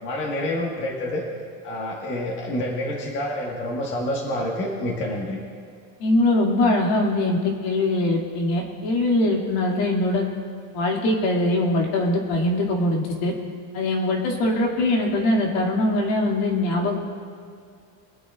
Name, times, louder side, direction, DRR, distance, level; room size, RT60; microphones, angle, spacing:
voice 1, 0.0-1.2 1.6-5.4, left 1 dB, 30° left, -2 dB, 1.5 m, -28 dB
voice 2, 6.0-10.2 10.7-13.3 13.7-17.0, left 1 dB, 65° left, -1 dB, 2.3 m, -22 dB
23.5 x 9.6 x 2.4 m, 2.3 s
cardioid pair, 180°, 41 cm